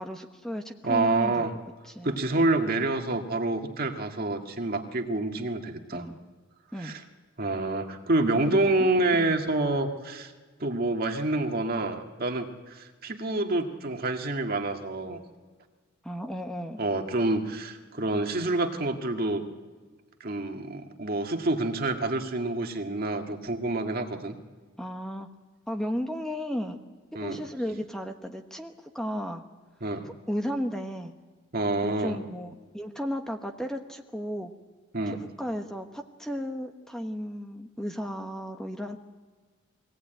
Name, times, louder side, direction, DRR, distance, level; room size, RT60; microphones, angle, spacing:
voice 1, 0.0-1.5 1.8-2.2 5.9-6.2 6.7-6.9 8.5-9.4 16.0-16.8 23.3-23.4 24.8-25.3 25.7-26.8 27.2-29.4 30.0-31.1 31.8-32.5 32.7-34.5 35.0-39.0, equal, 5° left, 5 dB, 1.1 m, -34 dB
voice 2, 0.8-1.5 2.0-6.0 6.8-7.0 7.4-10.3 10.6-15.2 16.8-19.4 20.2-24.4 27.2-27.4 29.8-30.1 31.5-32.2 34.9-35.2, right 2 dB, 50° right, 4 dB, 1.8 m, -27 dB
22.5 x 17.0 x 9.0 m, 1.4 s
head